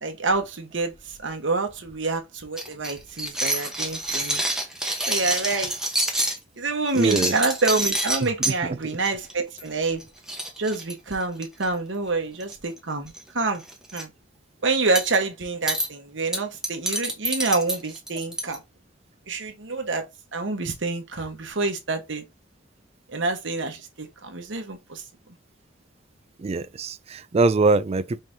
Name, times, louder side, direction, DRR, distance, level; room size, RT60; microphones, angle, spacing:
voice 1, 0.0-4.4 5.1-5.7 6.6-10.0 10.6-13.6 13.9-14.1 14.6-18.6 19.3-20.0 20.3-22.2 23.1-25.0, right 3 dB, 70° right, 1.2 m, -27 dB
sound 1, 2.6-6.4 6.9-8.6 9.0-9.3 9.6-9.7 10.0-10.1 10.3-11.6 12.4-12.8 13.1-13.2 13.6-14.0 15.0-15.2 15.7-15.9 16.3-18.6, right 1 dB, 5° right, 1.0 m, -27 dB
voice 2, 6.9-7.3 8.5-8.6 26.4-28.2, right 3 dB, 35° right, 0.3 m, -22 dB
5.5 x 3.3 x 2.7 m
head